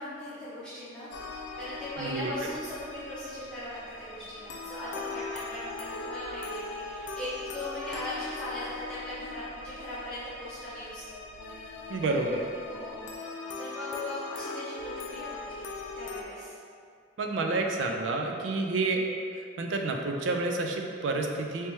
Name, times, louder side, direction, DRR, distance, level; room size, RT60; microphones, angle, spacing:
voice 1, 0.0-11.2 12.7-13.1 13.6-16.6, left 1 dB, 5° left, -13 dB, 0.7 m, -39 dB
sound 1, 1.1-16.2, left 3 dB, 70° left, 0.3 m, -40 dB
voice 2, 2.0-2.3 11.9-12.4 17.2-19.0 19.4-21.7, right 3 dB, 75° right, 2 dB, 0.4 m, -29 dB
3.3 x 2.9 x 3.0 m, 2.3 s
head